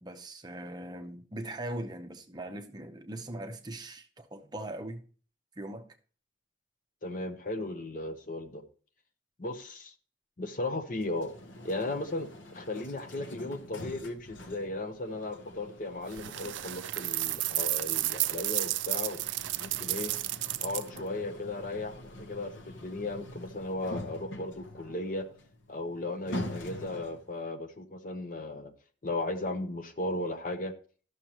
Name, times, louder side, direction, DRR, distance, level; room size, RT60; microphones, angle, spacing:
voice 1, 0.0-5.0 5.6-5.9, right 1 dB, 20° right, 0.6 m, -40 dB
voice 2, 7.0-8.6 9.4-9.9 10.4-11.3 11.6-19.3 19.6-20.1 20.6-25.3 25.7-28.7 29.0-30.7, left 2 dB, 45° left, 0.8 m, -36 dB
sound 1, 11.0-27.4, left 1 dB, 90° left, 0.9 m, -45 dB
sound 2, 16.1-21.0, right 17 dB, 75° right, 0.3 m, -32 dB
12.5 x 6.3 x 2.9 m
head